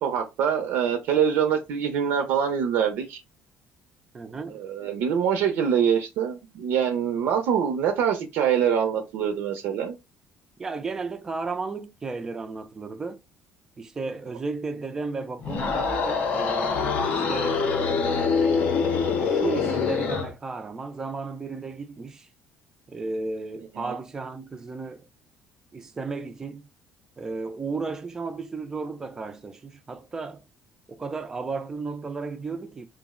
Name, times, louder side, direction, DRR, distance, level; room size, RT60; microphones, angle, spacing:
voice 1, 0.0-3.2 4.5-9.9 23.8-23.9, right 8 dB, 80° right, 0.5 m, -24 dB
voice 2, 4.1-4.6 10.6-13.2 13.8-17.8 19.2-22.3 22.9-25.1 25.7-26.7 27.2-30.4 30.9-32.9, right 4 dB, 15° right, 0.3 m, -34 dB
sound 1, 15.4-20.3, left 5 dB, 45° left, 0.5 m, -24 dB
2.4 x 2.0 x 3.5 m
cardioid pair, 170°, 4 cm